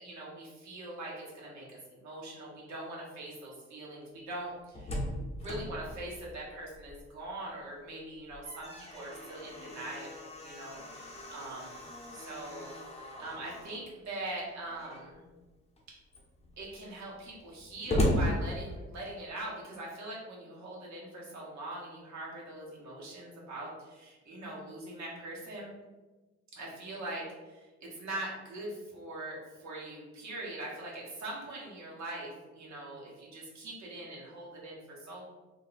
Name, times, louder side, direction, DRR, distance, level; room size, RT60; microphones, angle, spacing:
voice 1, 0.0-11.9 12.1-12.7 13.2-15.2 16.6-25.7 26.5-35.2, right 1 dB, 65° right, -4 dB, 1.3 m, -42 dB
Slam, 4.4-7.2 7.6-7.7 8.1-13.8 14.7-15.2 15.8-15.9 16.1-19.2, equal, 20° left, 0.8 m, -36 dB
2.7 x 2.2 x 4.0 m, 1.2 s
cardioid pair, 90°, 30 cm